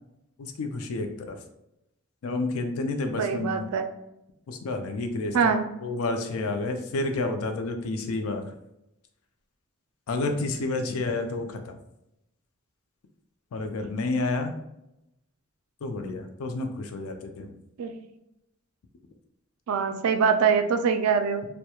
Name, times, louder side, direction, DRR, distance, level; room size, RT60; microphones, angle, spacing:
voice 1, 0.4-1.4 2.2-3.7 4.5-5.5 5.8-8.4 10.1-11.7 13.5-14.5 15.8-17.5, left 2 dB, 75° left, 6 dB, 0.4 m, -30 dB
voice 2, 3.2-3.9 5.3-5.6 17.8-17.9 19.7-21.5, right 6 dB, 90° right, 8 dB, 0.3 m, -23 dB
2.8 x 2.1 x 2.2 m, 0.86 s
head